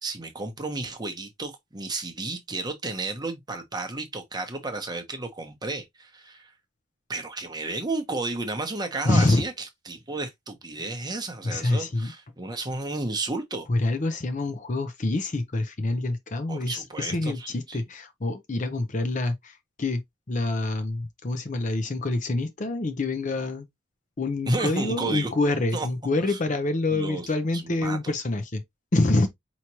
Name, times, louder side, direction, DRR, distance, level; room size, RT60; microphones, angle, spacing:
voice 1, 0.0-6.5 7.1-13.7 16.5-17.8 24.5-25.3 25.7-25.9 26.3-26.4 26.9-28.1, right 2 dB, 20° right, 0.9 m, -32 dB
voice 2, 9.0-9.4 10.8-10.9 11.4-12.1 13.7-19.4 19.8-20.0 20.3-23.7 24.2-28.6 28.9-29.3, left 2 dB, 35° left, 0.6 m, -26 dB
4.9 x 3.0 x 2.8 m
head